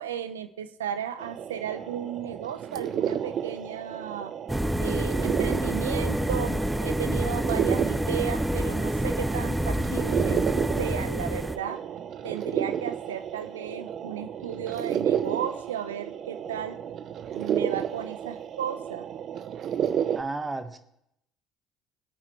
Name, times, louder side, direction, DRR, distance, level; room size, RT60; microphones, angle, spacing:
voice 1, 0.0-4.3 4.8-10.5 10.8-11.8 12.2-16.8 17.3-19.1, right 9 dB, 85° right, 11 dB, 0.7 m, -34 dB
sound 1, 1.2-20.2, right 9 dB, 50° right, 0.7 m, -32 dB
sound 2, 4.5-11.6, right 1 dB, 5° right, 0.9 m, -27 dB
voice 2, 20.1-20.8, right 3 dB, 20° right, 8 dB, 1.4 m, -32 dB
20.0 x 8.8 x 3.1 m, 0.75 s
hypercardioid pair, 60°, 0 cm